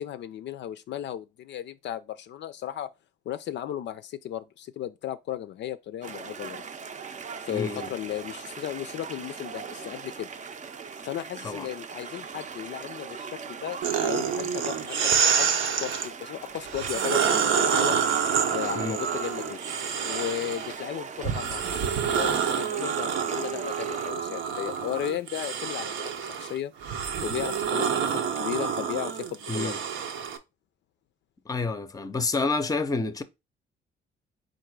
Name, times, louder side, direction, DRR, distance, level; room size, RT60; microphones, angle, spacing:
voice 1, 0.0-2.9 3.3-6.6 7.4-10.3 11.0-15.1 15.4-15.5 15.8-18.0 18.5-19.6 20.0-21.8 22.1-26.7 27.2-29.7, left 11 dB, 65° left, 0.4 m, -35 dB
sound 1, 6.0-24.1, right 6 dB, 40° right, 0.5 m, -40 dB
voice 2, 7.5-7.9 11.4-11.7 18.7-19.0 29.5-29.8 31.5-33.2, left 3 dB, 20° left, 0.6 m, -29 dB
sound 2, 13.8-16.1 16.7-20.8 21.2-30.4, right 7 dB, 75° right, 0.7 m, -27 dB
3.8 x 2.6 x 4.6 m
cardioid pair, 90°, 20 cm